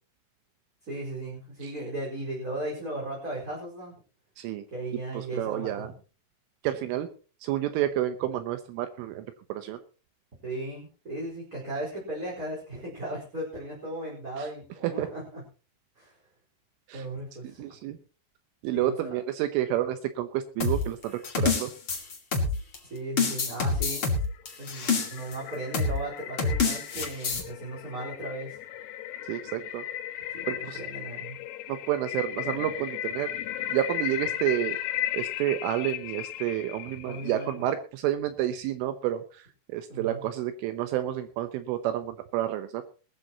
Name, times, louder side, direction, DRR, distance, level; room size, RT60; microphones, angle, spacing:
voice 1, 0.8-3.9 4.7-5.9 10.4-15.4 16.0-16.2 16.9-17.8 18.7-19.2 22.8-24.2 24.6-28.6 30.3-31.4 37.0-37.6 39.9-40.2, right 1 dB, 20° right, -4 dB, 4.6 m, -36 dB
voice 2, 5.1-5.9 6.6-7.1 7.4-9.8 14.4-14.5 14.8-15.1 16.9-17.1 17.4-18.0 18.6-21.7 29.3-29.8 30.5-30.8 31.7-33.3 33.7-34.8 35.1-42.8, right 12 dB, 75° right, 9 dB, 3.3 m, -30 dB
sound 1, 20.6-22.8 23.2-25.3 25.7-26.0 26.4-27.4, left 4 dB, 40° left, 2.1 m, -27 dB
sound 2, 24.3-37.6, left 12 dB, 85° left, 3.8 m, -36 dB
20.5 x 13.5 x 3.0 m, 0.36 s
omnidirectional pair, 6.0 m